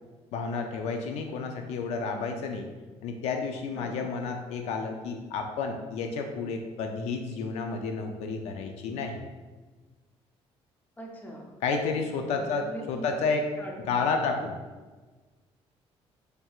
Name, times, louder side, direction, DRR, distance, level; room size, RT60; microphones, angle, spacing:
voice 1, 0.3-2.7 3.0-9.2 11.6-13.5 13.9-14.6, left 4 dB, 85° left, 4 dB, 0.4 m, -31 dB
voice 2, 11.0-11.6 12.3-13.1 13.6-13.9 14.3-14.4, equal, 15° left, -1 dB, 0.6 m, -42 dB
4.4 x 3.3 x 2.3 m, 1.3 s
cardioid pair, 145°, 11 cm